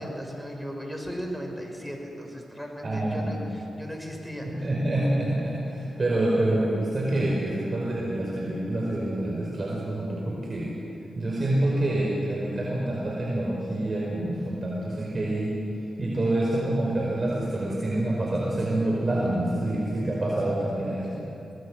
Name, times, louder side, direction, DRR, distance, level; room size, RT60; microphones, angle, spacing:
voice 1, 0.0-4.7, equal, ahead, 1 dB, 6.0 m, -37 dB
voice 2, 2.8-3.4 4.4-10.7 11.2-21.2, right 1 dB, 45° right, -4 dB, 5.2 m, -27 dB
25.5 x 18.5 x 6.5 m, 2.9 s
supercardioid pair, 50°, 0 cm